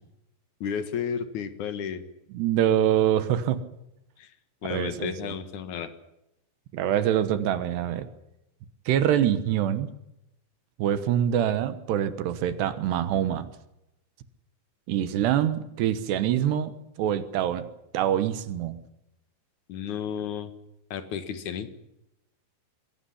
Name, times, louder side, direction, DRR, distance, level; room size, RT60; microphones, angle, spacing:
voice 1, 0.6-2.0 4.2-4.3 4.6-5.9 19.7-20.5 20.9-21.7, left 7 dB, 60° left, 10 dB, 2.1 m, -32 dB
voice 2, 2.3-3.6 4.6-5.3 6.7-8.1 8.9-9.9 10.8-13.5 14.9-16.7 17.0-17.7 17.9-18.8, right 10 dB, 70° right, 11 dB, 3.0 m, -25 dB
23.0 x 17.5 x 10.0 m, 0.86 s
omnidirectional pair, 5.5 m